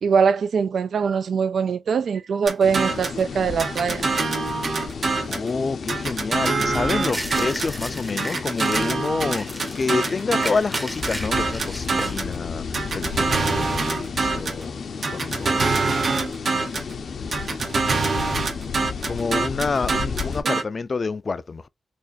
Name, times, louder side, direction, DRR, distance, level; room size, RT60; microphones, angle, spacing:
voice 1, 0.0-4.1 20.4-20.5, right 6 dB, 85° right, 0.4 m, -22 dB
sound 1, 2.5-3.2 3.6-5.5 5.9-7.8 8.2-12.3 12.7-14.6 15.0-16.9 17.3-20.6, right 4 dB, 65° right, 0.9 m, -25 dB
sound 2, 2.6-20.4, left 5 dB, 75° left, 0.7 m, -33 dB
voice 2, 5.3-14.8 15.1-15.8 19.1-21.7, left 4 dB, 50° left, 0.4 m, -28 dB
sound 3, 7.1-9.0 9.3-12.2, right 1 dB, 15° right, 0.7 m, -34 dB
4.3 x 2.5 x 2.5 m
wide cardioid pair, 95°, 0 cm